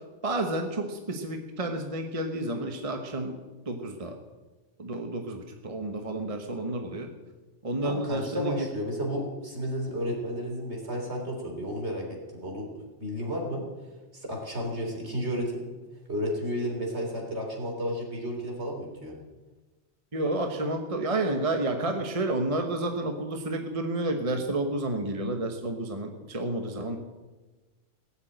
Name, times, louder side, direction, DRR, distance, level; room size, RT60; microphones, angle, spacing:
voice 1, 0.2-3.4 3.7-4.2 4.8-7.1 7.6-8.6 20.1-27.0, right 2 dB, 30° right, 4 dB, 1.2 m, -30 dB
voice 2, 7.8-12.0 12.3-12.7 13.0-13.6 14.1-15.6 16.1-19.1, equal, 60° right, 0 dB, 3.7 m, -32 dB
18.5 x 7.3 x 9.0 m, 1.3 s
omnidirectional pair, 1.3 m